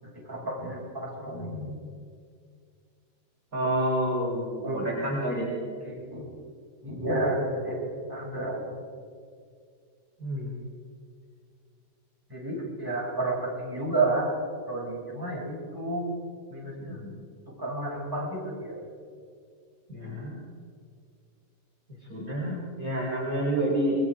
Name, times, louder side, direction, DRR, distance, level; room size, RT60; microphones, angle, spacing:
voice 1, 0.0-1.8 4.6-5.0 5.8-6.3 6.8-8.8 12.3-14.3 14.6-16.1 16.5-17.0 17.6-18.8, right 2 dB, 5° right, -5 dB, 6.6 m, -31 dB
voice 2, 3.5-5.5 10.2-10.5 16.8-17.1 19.9-20.5 22.1-24.0, right 1 dB, 25° right, -5 dB, 4.6 m, -29 dB
28.0 x 22.5 x 4.9 m, 2.2 s
omnidirectional pair, 4.0 m